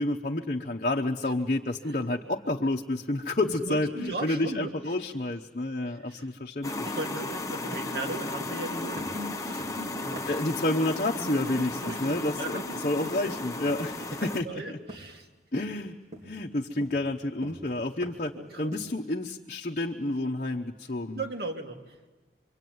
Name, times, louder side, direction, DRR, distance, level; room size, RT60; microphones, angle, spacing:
voice 1, 0.0-6.9 10.3-14.8 15.5-16.0 16.2-21.2, left 2 dB, 45° left, 1 dB, 0.9 m, -30 dB
voice 2, 3.4-4.7 6.1-6.3 6.8-10.2 11.2-13.1 13.9-14.1 14.4-15.3 18.3-18.7 21.1-21.8, right 2 dB, 60° right, 2 dB, 2.8 m, -37 dB
sound 1, 6.6-14.4, left 2 dB, 20° left, 1.0 m, -35 dB
sound 2, 7.7-8.7 9.0-10.5 11.1-11.4 11.9-12.1 12.5-12.9 13.3-13.9 14.2-14.6 14.9-15.3 15.6-15.8 16.1-18.4 18.7-19.1, right 1 dB, 40° right, 2.6 m, -45 dB
26.0 x 24.5 x 9.4 m, 1.2 s
head